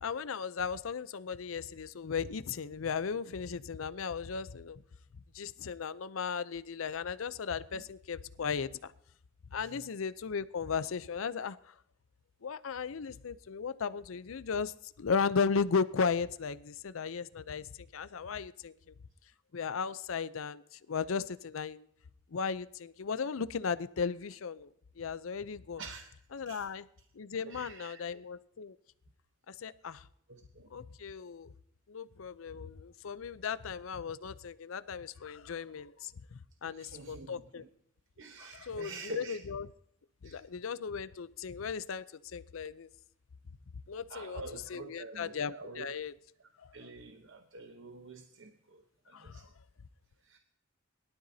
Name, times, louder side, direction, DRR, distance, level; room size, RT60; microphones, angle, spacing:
voice 1, 0.0-4.8 5.3-8.9 9.5-11.6 12.4-14.7 15.0-18.7 19.5-21.9 22.3-24.7 25.0-25.8 26.3-26.8 27.2-28.8 29.5-30.0 30.7-31.5 31.9-37.6 38.4-39.7 40.2-42.9 43.9-46.1 49.1-49.5, left 5 dB, 75° left, 15 dB, 0.5 m, -36 dB
voice 2, 25.8-26.1 26.5-26.7 27.4-28.2 30.3-30.7 36.6-37.7 38.2-39.4 40.2-40.4 44.1-45.9 46.4-49.4 50.2-50.4, right 3 dB, 65° right, 5 dB, 0.9 m, -47 dB
22.0 x 12.5 x 2.7 m, 0.71 s
head